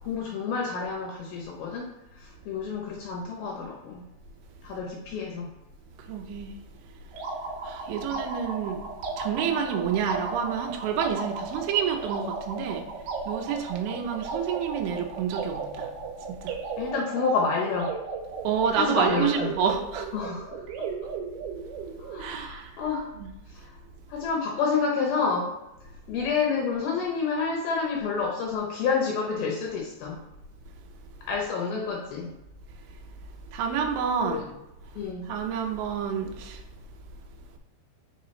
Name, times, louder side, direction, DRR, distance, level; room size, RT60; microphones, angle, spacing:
voice 1, 0.0-4.0 4.6-5.5 16.8-17.9 18.7-19.5 20.1-20.6 22.1-23.1 23.5-23.8 24.1-25.6 26.1-30.2 31.3-32.3 34.2-34.4 35.0-35.3, left 5 dB, 75° left, 2.3 m, -29 dB
voice 2, 6.0-6.6 7.6-8.9 9.2-15.9 16.2-16.6 18.5-20.1 22.2-22.8 23.2-23.3 33.5-34.4 35.2-36.6, right 7 dB, 90° right, 3.4 m, -29 dB
sound 1, 7.1-22.3, right 4 dB, 70° right, 2.8 m, -35 dB
7.5 x 5.9 x 3.2 m
omnidirectional pair, 5.3 m